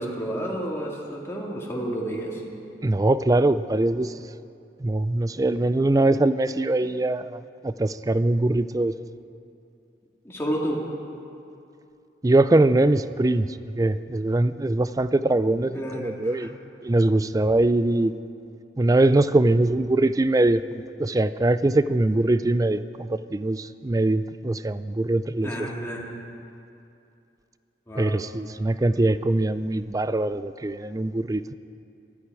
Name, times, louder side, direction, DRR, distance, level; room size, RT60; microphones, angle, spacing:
voice 1, 0.0-2.4 5.3-5.4 10.2-10.8 15.7-16.5 25.4-26.0 27.9-28.2, right 1 dB, 15° left, -3 dB, 2.2 m, -31 dB
voice 2, 2.8-4.1 4.8-8.9 12.2-16.5 16.8-18.1 18.8-25.5 28.0-31.5, right 2 dB, 20° right, 13 dB, 0.4 m, -22 dB
20.0 x 13.5 x 4.8 m, 2.6 s
head